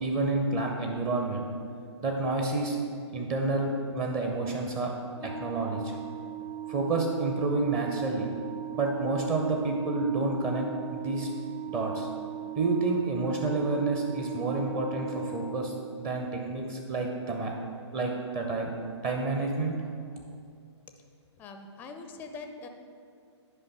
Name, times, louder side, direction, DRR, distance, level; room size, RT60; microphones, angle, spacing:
voice 1, 0.0-1.4 2.0-2.8 3.1-4.9 5.2-5.9 6.7-8.3 8.7-10.7 10.9-11.3 11.7-12.1 12.6-15.7 16.0-17.5 17.9-18.7 19.0-19.7, right 3 dB, 25° right, 1 dB, 0.7 m, -29 dB
Organ, 5.1-16.0, right 11 dB, 60° right, 1.4 m, -39 dB
voice 2, 21.4-22.7, left 4 dB, 10° left, 6 dB, 0.4 m, -43 dB
9.9 x 5.3 x 5.5 m, 2.4 s
figure-of-eight pair, 125°, 15 cm